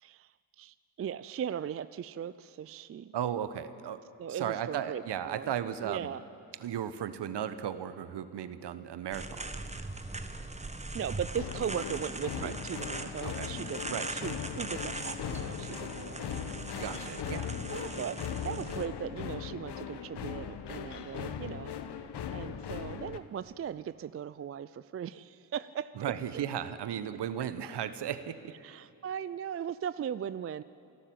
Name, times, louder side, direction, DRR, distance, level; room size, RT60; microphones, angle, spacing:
voice 1, 0.0-3.1 4.2-5.5 5.8-6.2 10.9-16.5 17.7-21.7 22.3-26.4 28.6-30.6, right 9 dB, 30° right, 16 dB, 0.5 m, -38 dB
voice 2, 3.1-4.0 4.3-6.1 6.6-9.5 12.4-12.5 13.2-13.5 13.9-14.1 16.7-17.6 26.0-28.5, right 9 dB, 55° right, 12 dB, 1.2 m, -35 dB
sound 1, 9.1-18.9, right 2 dB, 15° right, 1.5 m, -40 dB
sound 2, 11.3-23.2, left 8 dB, 55° left, 1.3 m, -39 dB
28.0 x 12.0 x 7.8 m, 2.6 s
hypercardioid pair, 45°, 49 cm